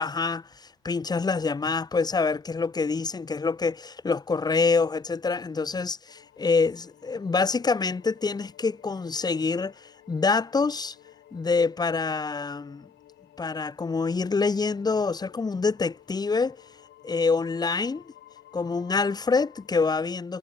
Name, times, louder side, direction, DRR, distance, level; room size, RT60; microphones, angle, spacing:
voice 1, 0.0-10.9 11.3-12.9 13.4-16.6 17.0-18.0 18.5-20.4, left 4 dB, 20° left, 1.3 m, -26 dB
sound 1, 6.1-19.7, left 13 dB, 55° left, 5.2 m, -54 dB
hypercardioid pair, 80°, 21 cm